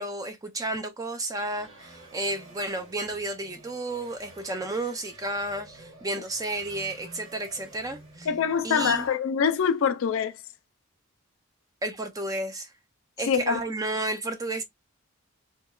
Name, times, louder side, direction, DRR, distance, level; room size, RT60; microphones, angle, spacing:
voice 1, 0.0-8.3 8.6-9.1 11.8-12.7 13.2-14.6, right 2 dB, 15° right, 0.3 m, -32 dB
sound 1, 1.4-9.1, right 2 dB, 60° right, 1.3 m, -50 dB
voice 2, 8.3-10.4 13.3-13.6, left 7 dB, 65° left, 0.4 m, -24 dB
2.9 x 2.2 x 2.2 m
head